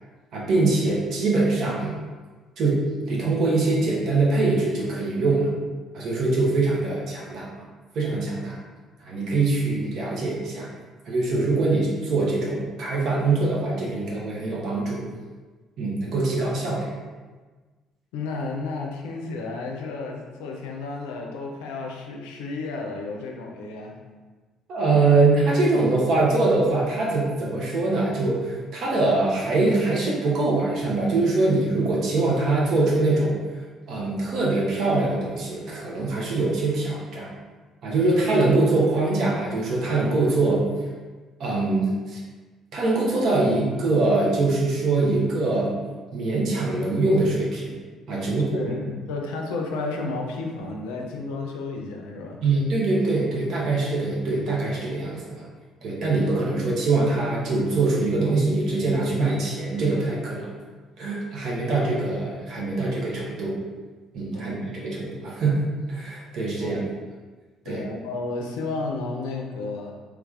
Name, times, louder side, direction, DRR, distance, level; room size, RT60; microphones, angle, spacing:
voice 1, 0.3-1.9 2.6-5.5 5.9-7.5 7.9-8.6 9.1-10.7 11.1-15.0 15.8-17.0 24.7-33.4 33.9-37.3 37.8-40.6 41.4-42.2 42.7-45.8 46.1-47.8 48.1-48.5 52.4-55.4 55.8-60.5 61.0-63.5 64.1-66.8 67.6-67.8, right 3 dB, 60° right, -4 dB, 0.9 m, -23 dB
voice 2, 18.1-24.0 48.3-52.4 64.3-64.5 66.6-66.7 67.6-69.9, left 3 dB, 80° left, 1 dB, 0.4 m, -32 dB
3.3 x 3.2 x 2.4 m, 1.4 s
hypercardioid pair, 55°, 0 cm